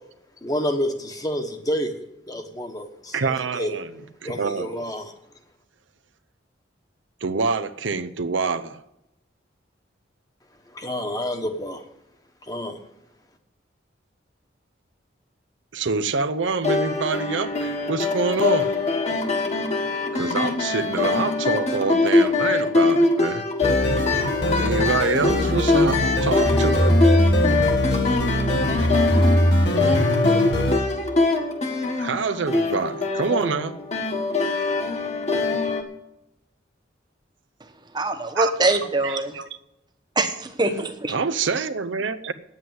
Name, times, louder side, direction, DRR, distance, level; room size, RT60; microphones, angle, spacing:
voice 1, 0.4-3.7 4.2-5.1 10.7-11.8 12.5-12.8, equal, 20° left, 5 dB, 1.2 m, -29 dB
voice 2, 3.1-3.9 4.2-4.9 7.2-8.8 15.7-18.8 20.1-23.5 24.5-26.9 32.0-33.8 38.3-38.5 39.0-39.5 41.1-42.3, right 4 dB, 90° right, 11 dB, 0.7 m, -26 dB
sound 1, 16.6-35.8, left 3 dB, 35° left, 1.5 m, -23 dB
sound 2, 23.6-30.8, equal, 65° left, 1.9 m, -21 dB
voice 3, 37.9-39.3 40.2-41.1, right 2 dB, 25° right, 7 dB, 1.1 m, -23 dB
9.5 x 8.2 x 9.3 m, 0.86 s
head